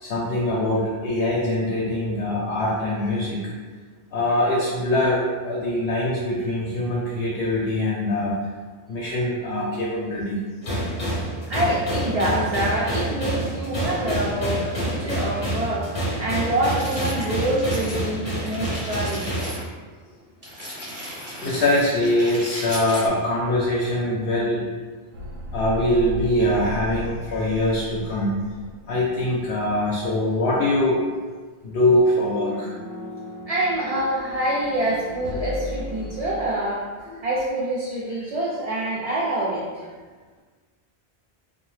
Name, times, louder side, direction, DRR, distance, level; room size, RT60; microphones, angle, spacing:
voice 1, 0.0-3.5 4.1-8.4 8.9-10.4 10.7-10.9 14.1-14.2 15.0-15.1 18.5-18.6 21.4-24.7 25.5-28.4 28.9-31.0 31.6-32.7 37.1-37.2, left 1 dB, 75° left, -4 dB, 0.8 m, -23 dB
sound 1, 10.6-19.5, right 1 dB, 40° left, 0.7 m, -28 dB
voice 2, 11.5-19.3 33.5-36.8 37.2-39.8, right 1 dB, 55° right, -6 dB, 0.4 m, -26 dB
sound 2, 16.6-18.0 18.3-19.6 20.4-23.1, equal, 30° right, 0.8 m, -36 dB
sound 3, 25.1-30.0 30.2-30.5 31.9-36.5, left 2 dB, 70° right, 0.8 m, -37 dB
2.6 x 2.1 x 3.2 m, 1.4 s
omnidirectional pair, 1.1 m